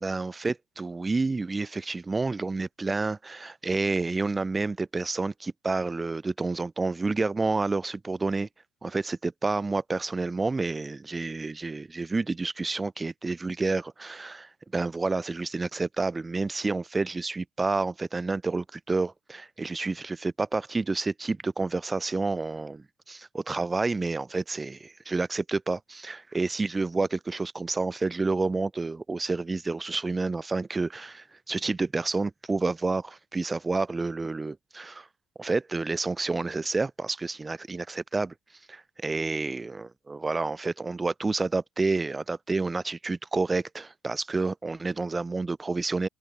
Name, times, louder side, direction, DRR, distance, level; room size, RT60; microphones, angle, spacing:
voice 1, 0.0-8.5 8.8-35.1 35.4-38.3 38.7-46.1, right 3 dB, 15° right, 1.7 m, -29 dB
cardioid pair, 135°, 0 cm